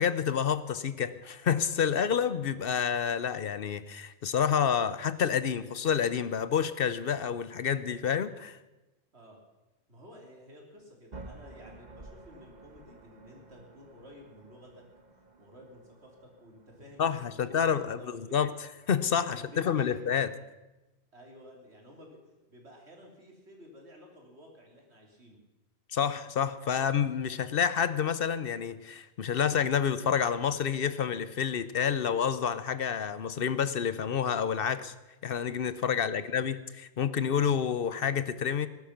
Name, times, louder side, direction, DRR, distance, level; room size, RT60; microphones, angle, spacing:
voice 1, 0.0-8.6 17.0-20.3 25.9-34.9 35.2-38.7, left 7 dB, 60° left, 14 dB, 0.9 m, -29 dB
voice 2, 9.9-14.8 15.4-18.4 19.3-20.1 21.1-22.2 22.5-25.4 35.8-36.5, equal, 80° right, 0 dB, 3.6 m, -52 dB
sound 1, 11.1-19.1, right 2 dB, 40° right, 1.4 m, -53 dB
19.0 x 11.5 x 5.9 m, 1.1 s
omnidirectional pair, 1.1 m